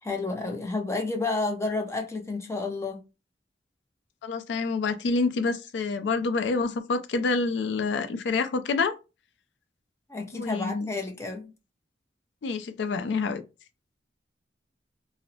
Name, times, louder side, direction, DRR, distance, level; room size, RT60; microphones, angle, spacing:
voice 1, 0.0-3.0 10.1-11.5, left 3 dB, 15° left, 0.5 m, -30 dB
voice 2, 4.2-8.9 10.3-10.9 12.4-13.4, left 4 dB, 70° left, 0.4 m, -27 dB
2.6 x 2.0 x 2.7 m
head